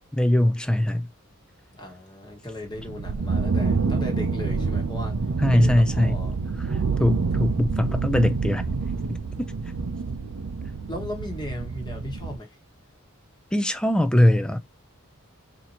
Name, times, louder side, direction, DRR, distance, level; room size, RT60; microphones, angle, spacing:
voice 1, 0.1-1.1 5.4-6.2 7.0-8.6 13.5-14.6, left 1 dB, 5° left, 0.3 m, -21 dB
voice 2, 1.7-5.1 5.5-6.4 7.3-7.4 10.9-12.6, left 1 dB, 20° left, 1.2 m, -36 dB
sound 1, 2.6-12.4, right 4 dB, 75° right, 0.6 m, -27 dB
4.2 x 2.8 x 2.9 m
head